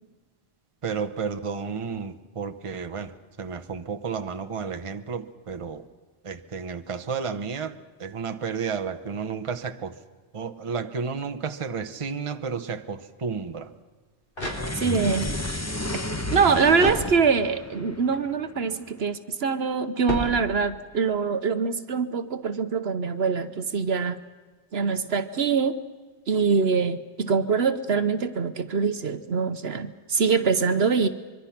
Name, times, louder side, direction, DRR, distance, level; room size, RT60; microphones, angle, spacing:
voice 1, 0.8-3.1 3.4-5.8 6.2-10.0 10.3-13.7, right 5 dB, 30° right, 8 dB, 1.0 m, -32 dB
sound 1, 13.9-15.2 16.8-17.7 20.0-21.0, equal, 50° left, 4.9 m, -33 dB
sound 2, 14.4-18.8, left 2 dB, 15° left, 1.0 m, -32 dB
voice 2, 14.7-15.3 15.9-16.0 16.3-24.2 24.7-25.8 26.3-31.1, right 5 dB, 65° right, 11 dB, 1.2 m, -24 dB
24.5 x 23.5 x 5.9 m, 1.4 s
omnidirectional pair, 1.2 m